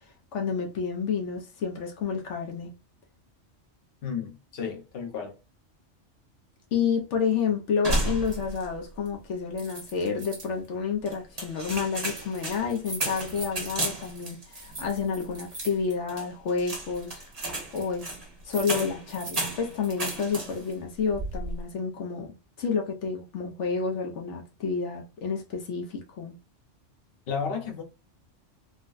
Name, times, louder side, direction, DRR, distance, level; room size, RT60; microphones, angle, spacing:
voice 1, 0.3-2.7 6.7-17.2 17.7-18.1 18.4-26.3, left 5 dB, 75° left, 1.1 m, -30 dB
voice 2, 4.0-5.4 27.3-27.8, left 6 dB, 55° left, 1.0 m, -33 dB
sound 1, 7.8-8.8 9.1-9.2 9.6-10.5 11.1-20.7 21.1-21.6, right 1 dB, 35° right, 1.2 m, -34 dB
3.9 x 2.2 x 2.4 m
omnidirectional pair, 1.2 m